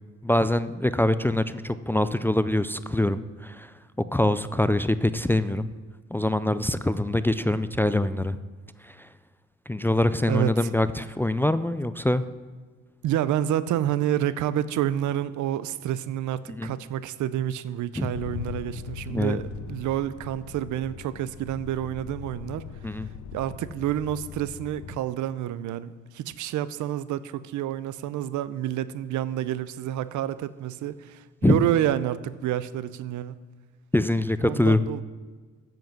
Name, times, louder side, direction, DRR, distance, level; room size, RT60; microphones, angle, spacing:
voice 1, 0.2-3.7 4.1-5.7 6.1-8.4 8.8-9.1 9.7-12.2 16.5-16.7 18.0-18.1 19.1-19.4 22.8-23.1 31.4-31.6 33.9-34.9, left 1 dB, 5° left, 0.3 m, -24 dB
voice 2, 10.3-10.7 13.0-23.0 23.3-33.4 34.4-35.0, right 11 dB, 75° right, 0.6 m, -29 dB
sound 1, 18.1-25.0, left 9 dB, 90° left, 0.6 m, -40 dB
9.2 x 7.9 x 6.0 m
cardioid pair, 90°, 30 cm